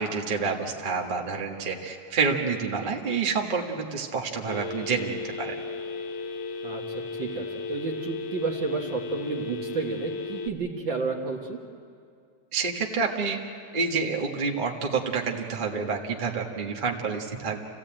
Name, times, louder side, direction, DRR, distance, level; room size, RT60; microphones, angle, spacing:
voice 1, 0.0-5.6 12.5-13.4 13.7-17.6, right 5 dB, 25° right, 0 dB, 1.0 m, -28 dB
Telephone, 4.5-10.5, left 4 dB, 65° left, 1.6 m, -35 dB
voice 2, 6.6-11.6, right 4 dB, 45° right, 1 dB, 1.8 m, -31 dB
28.5 x 16.0 x 8.9 m, 2.3 s
omnidirectional pair, 3.4 m